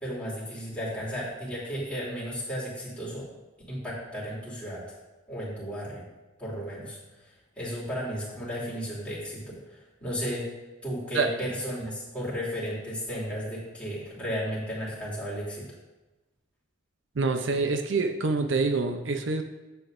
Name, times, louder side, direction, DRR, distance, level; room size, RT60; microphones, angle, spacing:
voice 1, 0.0-3.3 3.7-4.8 5.3-6.0 6.4-7.3 7.5-10.5 10.8-15.6, equal, 5° left, -8 dB, 3.0 m, -34 dB
voice 2, 17.2-19.4, right 4 dB, 75° right, 6 dB, 0.6 m, -26 dB
10.5 x 8.2 x 2.6 m, 1.1 s
head